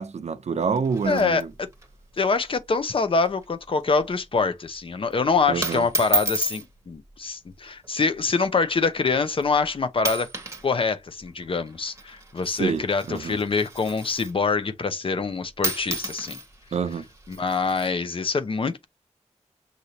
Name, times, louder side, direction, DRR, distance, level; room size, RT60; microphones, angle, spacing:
voice 1, 0.0-1.5 5.5-5.9 12.5-13.4 16.7-17.1, right 5 dB, 65° right, 0.6 m, -27 dB
sound 1, 0.6-1.9 2.2-2.3 2.6-2.8 3.2-3.5 3.8-4.1 4.9-5.1 5.6-6.7 7.6-7.9 8.6-8.7 9.4-9.6 10.0-10.7 10.9-14.5 15.3-15.4 15.6-17.9, right 2 dB, 25° right, 1.2 m, -32 dB
voice 2, 1.0-1.4 2.2-10.3 10.6-16.4 17.3-18.8, left 4 dB, 45° left, 0.7 m, -25 dB
6.5 x 2.7 x 2.8 m
wide cardioid pair, 130°, 12 cm